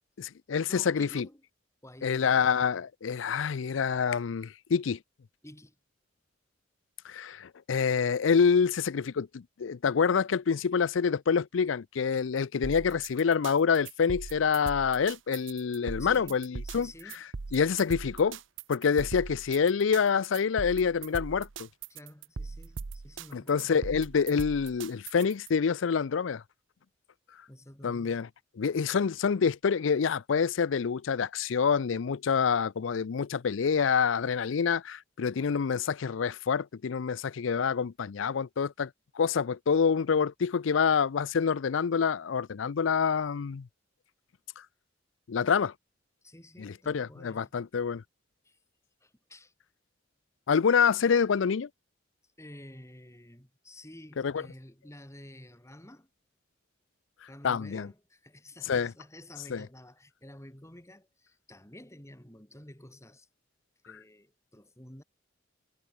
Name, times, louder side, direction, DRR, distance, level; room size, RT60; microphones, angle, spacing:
voice 1, 0.2-1.3 2.0-5.0 7.0-16.9 17.5-18.4 18.7-21.7 23.3-26.4 27.8-28.3 28.6-38.9 39.2-43.7 45.3-45.7 46.6-48.0 50.5-51.7 54.2-54.4 57.4-57.9 58.7-58.9 59.5-59.6, left 6 dB, 80° left, 0.5 m, -27 dB
voice 2, 0.7-1.4 1.8-2.4 5.4-5.8 16.0-16.4 16.6-17.2 21.9-23.7 27.5-28.2 46.2-47.5 48.4-48.6 49.0-49.5 52.4-56.1 57.3-63.3 63.9-65.0, left 1 dB, 15° left, 4.5 m, -50 dB
sound 1, 12.6-25.5, right 4 dB, 75° right, 0.7 m, -40 dB
head